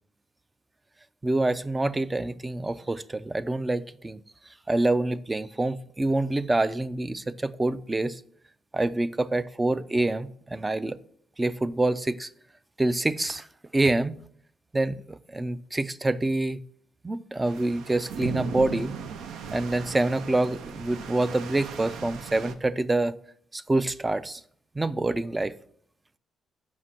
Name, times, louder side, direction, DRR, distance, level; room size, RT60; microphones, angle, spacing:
voice 1, 1.2-4.2 4.7-8.2 8.7-11.0 11.4-12.3 12.8-13.5 13.7-14.2 14.7-16.6 17.0-19.0 19.5-23.2 23.5-24.4 24.8-25.5, right 2 dB, 20° right, 0.4 m, -26 dB
sound 1, 17.4-22.5, right 6 dB, 80° right, 0.6 m, -37 dB
6.3 x 5.2 x 5.7 m
cardioid pair, 90°, 0 cm